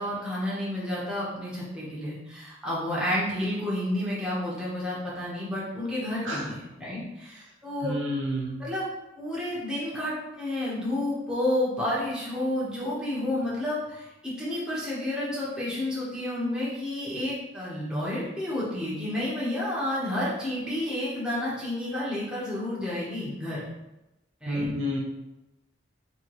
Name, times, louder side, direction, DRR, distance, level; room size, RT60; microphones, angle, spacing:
voice 1, 0.0-8.0 8.6-8.9 9.2-23.7 24.4-24.7, left 1 dB, 5° right, -8 dB, 1.1 m, -30 dB
voice 2, 7.8-8.6 24.5-25.0, equal, 80° right, -2 dB, 1.0 m, -29 dB
3.2 x 3.1 x 4.7 m, 0.96 s
head